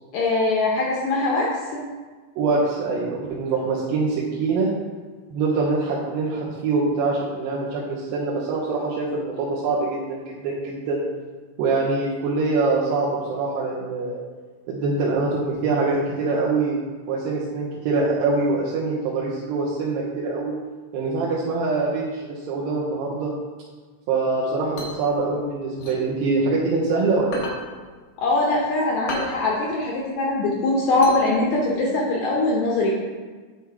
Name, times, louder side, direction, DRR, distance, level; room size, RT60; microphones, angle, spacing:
voice 1, 0.1-1.8 28.2-32.9, left 2 dB, 75° left, -3 dB, 1.7 m, -22 dB
voice 2, 2.4-4.7 5.3-11.1 11.6-14.2 14.7-16.8 17.1-20.6 20.9-23.3 24.1-27.5, right 3 dB, 80° right, -6 dB, 2.6 m, -24 dB
sound 1, 24.4-26.8 27.2-31.8, left 1 dB, 90° left, 1.2 m, -35 dB
9.7 x 3.4 x 4.6 m, 1.4 s
omnidirectional pair, 4.3 m